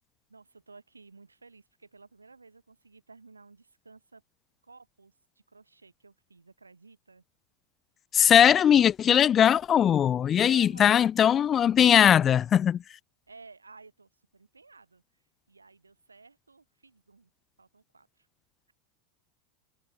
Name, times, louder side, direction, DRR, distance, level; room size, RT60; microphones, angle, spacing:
voice 1, 0.3-4.2 4.6-7.2 10.4-11.1 13.3-15.0 15.5-17.3 17.6-18.3, right 4 dB, 90° right, 7.1 m, -53 dB
voice 2, 8.1-12.8, left 9 dB, 30° left, 1.1 m, -20 dB
figure-of-eight pair, 85°, 0 cm